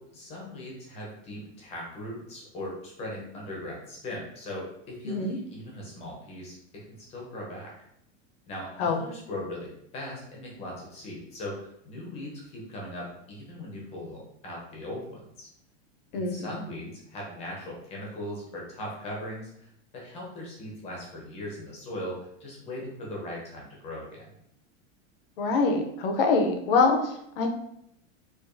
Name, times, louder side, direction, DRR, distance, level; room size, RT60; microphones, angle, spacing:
voice 1, 0.0-7.7 8.5-15.5 16.1-24.3, left 1 dB, 15° left, -2 dB, 0.8 m, -39 dB
voice 2, 5.0-5.4 8.8-9.0 16.1-16.6 25.4-27.5, left 4 dB, 50° left, 4 dB, 0.7 m, -25 dB
4.8 x 2.5 x 2.6 m, 0.75 s
supercardioid pair, 170°, 37 cm